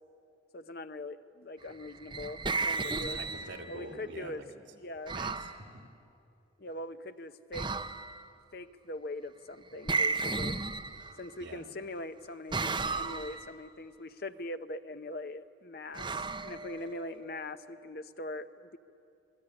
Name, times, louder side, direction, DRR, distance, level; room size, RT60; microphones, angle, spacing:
voice 1, 0.5-3.2 3.7-4.4 4.8-5.1 6.6-7.7 8.5-10.6 11.2-16.1 16.4-18.8, left 1 dB, 50° left, 10 dB, 0.8 m, -41 dB
sound 1, 1.8-3.8 5.1-5.6 7.5-8.3 9.9-11.3 12.5-13.5 15.9-17.1, right 3 dB, 25° right, 0.7 m, -34 dB
voice 2, 3.0-4.5 5.1-5.8 11.4-11.6, right 2 dB, 75° right, 4 dB, 3.0 m, -45 dB
28.0 x 21.0 x 9.9 m, 2.6 s
head